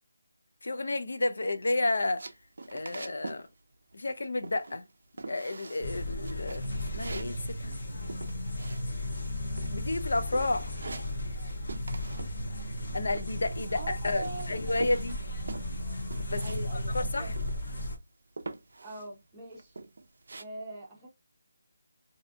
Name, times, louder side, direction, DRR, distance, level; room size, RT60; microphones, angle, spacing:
voice 1, 0.6-2.3 2.7-3.5 3.9-4.8 5.3-6.6 6.9-7.8 9.7-10.7 12.9-15.2 16.3-16.6 16.9-17.3, left 2 dB, 70° left, 0.4 m, -31 dB
sound 1, 2.2-3.5 3.7-4.2 4.4-4.9 5.2-5.9 6.2-9.3 9.6-10.0 10.3-11.4 11.7-12.3 12.6-14.0 14.4-16.6 16.9-17.0 17.3-17.9 18.4-19.1 19.5-20.4, right 3 dB, 60° right, 0.4 m, -44 dB
sound 2, 5.8-18.0, left 1 dB, 50° left, 0.9 m, -35 dB
voice 2, 13.7-14.8 16.4-17.3 18.8-19.8 20.4-21.1, right 2 dB, 10° right, 0.8 m, -42 dB
2.6 x 2.5 x 2.3 m
figure-of-eight pair, 175°, 0 cm